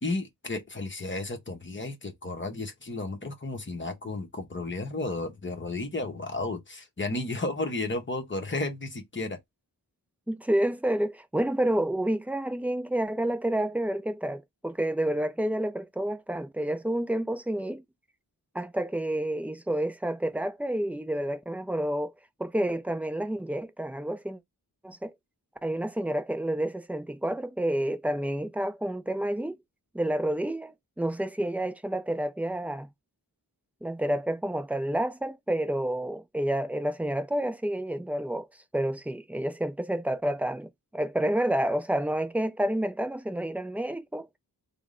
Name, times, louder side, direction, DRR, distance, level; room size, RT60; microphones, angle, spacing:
voice 1, 0.0-9.4, left 2 dB, 30° left, 0.9 m, -33 dB
voice 2, 10.3-17.8 18.5-22.1 22.4-24.4 24.8-25.1 25.6-29.6 29.9-32.9 33.8-38.5 38.7-44.3, right 1 dB, 5° right, 0.4 m, -29 dB
3.5 x 2.1 x 3.7 m
wide cardioid pair, 95°, 39 cm